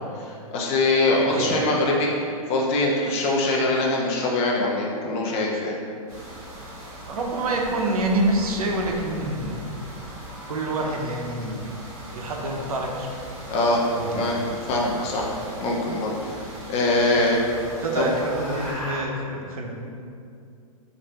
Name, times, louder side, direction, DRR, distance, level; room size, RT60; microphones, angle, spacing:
voice 1, 0.2-5.8 13.5-13.9 14.1-14.3 14.7-17.4 17.9-18.1, left 2 dB, 35° left, -2 dB, 0.6 m, -23 dB
voice 2, 1.3-1.6 7.1-9.6 10.5-11.6 12.1-13.1 13.9-14.3 17.0-17.2 17.8-19.7, right 2 dB, 75° right, 0 dB, 0.6 m, -27 dB
sound 1, 6.1-18.7, right 1 dB, 40° right, 1.3 m, -40 dB
sound 2, 6.8-10.3 12.7-13.1 15.2-15.3 15.8-15.9 16.4-19.0, left 1 dB, 5° right, 0.7 m, -42 dB
3.2 x 2.6 x 4.1 m, 2.4 s
hypercardioid pair, 125°, 19 cm